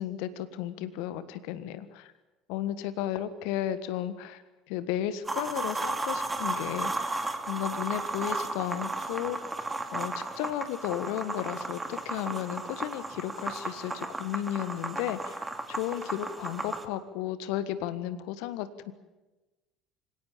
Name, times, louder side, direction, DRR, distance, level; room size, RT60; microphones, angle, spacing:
voice 1, 0.0-2.1 2.5-4.4 4.7-7.1 7.5-9.4 9.9-15.4 15.7-18.9, left 12 dB, 65° left, 13 dB, 1.5 m, -34 dB
sound 1, 5.3-16.9, right 2 dB, 15° right, 2.5 m, -34 dB
25.0 x 17.5 x 8.9 m, 1.1 s
figure-of-eight pair, 65°, 0 cm